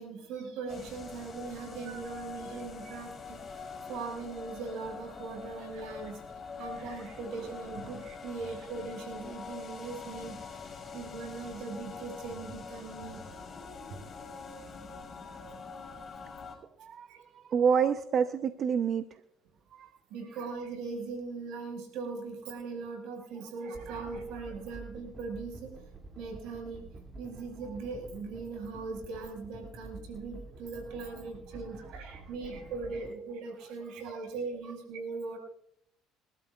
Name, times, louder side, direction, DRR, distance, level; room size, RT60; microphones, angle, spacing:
voice 1, 0.0-6.2 6.6-10.7 10.9-13.2 13.9-14.0 17.1-17.2 20.1-25.7 26.2-26.8 27.2-35.4, right 4 dB, 80° right, 1 dB, 5.5 m, -40 dB
sound 1, 0.7-16.6, left 5 dB, 35° left, 5.9 m, -44 dB
voice 2, 17.3-19.0 19.7-20.0, right 7 dB, 50° right, 10 dB, 0.7 m, -27 dB
sound 2, 23.7-33.1, right 2 dB, 30° right, 2.6 m, -48 dB
28.0 x 12.5 x 2.4 m, 0.75 s
cardioid pair, 100°, 0 cm